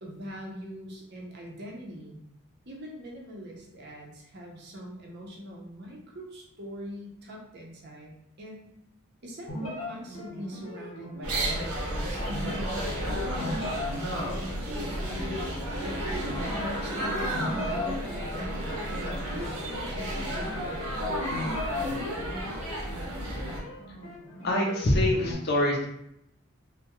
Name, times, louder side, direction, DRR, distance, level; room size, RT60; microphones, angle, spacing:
voice 1, 0.0-2.2 2.7-8.7 9.2-14.0 14.6-14.9 15.8-18.5 18.9-21.1, equal, 50° right, -1 dB, 0.5 m, -42 dB
sound 1, 9.5-25.3, left 2 dB, 75° left, 0.9 m, -38 dB
sound 2, 11.2-23.6, equal, 85° right, 0.7 m, -32 dB
voice 2, 24.4-25.9, left 1 dB, 45° left, -1 dB, 0.4 m, -24 dB
2.2 x 2.0 x 2.8 m, 0.77 s
head